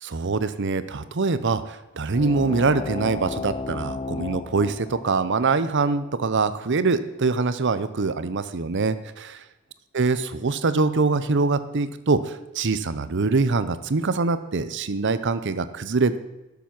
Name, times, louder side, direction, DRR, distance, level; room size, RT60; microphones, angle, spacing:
voice 1, 0.0-9.3 9.9-16.2, right 4 dB, 55° right, 13 dB, 0.7 m, -24 dB
sound 1, 2.1-7.2, left 4 dB, 25° left, 0.4 m, -35 dB
12.0 x 7.1 x 6.0 m, 1.0 s
head